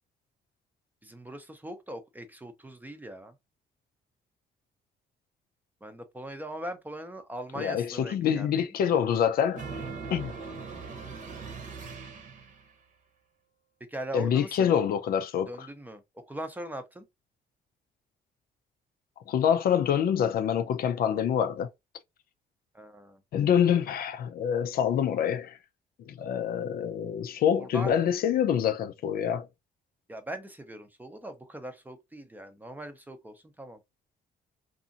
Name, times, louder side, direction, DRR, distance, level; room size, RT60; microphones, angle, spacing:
voice 1, 1.0-3.4 5.8-8.7 13.9-14.8 15.5-17.1 22.7-23.2 27.5-27.9 30.1-33.8, right 1 dB, 10° right, 0.6 m, -40 dB
voice 2, 7.6-9.6 10.1-10.3 14.1-15.7 19.3-21.7 23.3-25.6 26.1-29.5, left 8 dB, 65° left, 0.5 m, -26 dB
sound 1, 9.5-12.7, right 4 dB, 50° right, 0.9 m, -40 dB
2.7 x 2.6 x 2.5 m
cardioid pair, 115°, 17 cm